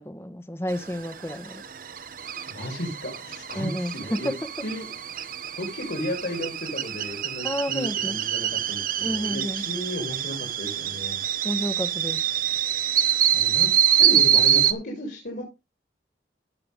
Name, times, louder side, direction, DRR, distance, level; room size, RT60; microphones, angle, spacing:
voice 1, 0.0-1.6 3.5-4.4 7.4-8.2 9.0-9.6 11.4-12.2, equal, 15° left, 0.9 m, -30 dB
sound 1, 0.7-14.7, right 10 dB, 50° right, 0.8 m, -25 dB
voice 2, 2.5-4.3 4.6-4.9 5.6-11.2 13.3-15.4, left 1 dB, 60° left, 3.4 m, -34 dB
15.0 x 5.8 x 3.6 m
head